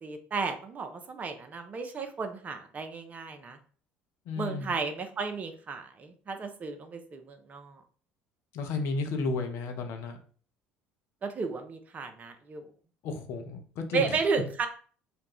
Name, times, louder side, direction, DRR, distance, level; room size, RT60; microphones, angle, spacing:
voice 1, 0.0-3.6 4.4-7.8 11.2-12.6 13.9-14.7, right 5 dB, 30° right, 6 dB, 0.4 m, -33 dB
voice 2, 4.3-4.7 8.5-10.2 13.0-14.2, left 3 dB, 55° left, 5 dB, 0.5 m, -33 dB
2.4 x 2.1 x 3.3 m, 0.43 s
figure-of-eight pair, 60°, 5 cm